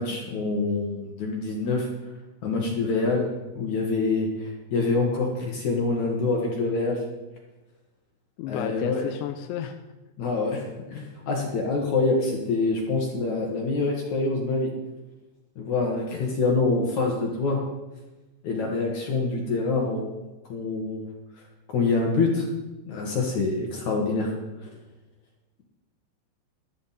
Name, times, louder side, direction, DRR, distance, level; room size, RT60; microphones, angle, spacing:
voice 1, 0.0-1.9 2.4-3.2 3.6-7.0 8.5-9.0 10.2-14.7 15.6-17.6 18.4-20.1 20.5-21.1 21.7-22.5 22.9-24.3, left 3 dB, 55° left, 0 dB, 2.2 m, -26 dB
voice 2, 8.4-9.8, left 10 dB, 85° left, 6 dB, 3.0 m, -32 dB
14.0 x 12.5 x 4.3 m, 1.1 s
omnidirectional pair, 5.3 m